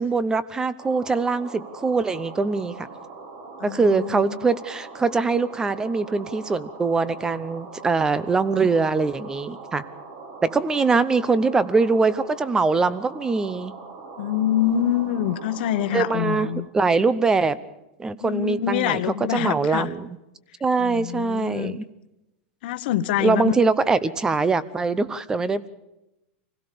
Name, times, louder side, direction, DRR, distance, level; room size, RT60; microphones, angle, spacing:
voice 1, 0.0-2.9 3.6-9.8 10.4-13.7 15.9-16.5 16.7-17.6 18.0-19.0 19.3-20.1 20.6-21.8 23.2-25.7, right 4 dB, 10° right, 18 dB, 0.8 m, -22 dB
sound 1, 0.8-16.5, right 4 dB, 50° right, 4.5 m, -41 dB
voice 2, 3.6-4.4 14.2-16.7 18.2-19.9 20.8-21.8 22.6-23.5, left 11 dB, 55° left, 12 dB, 1.2 m, -25 dB
25.5 x 17.0 x 6.8 m, 0.93 s
supercardioid pair, 150°, 6 cm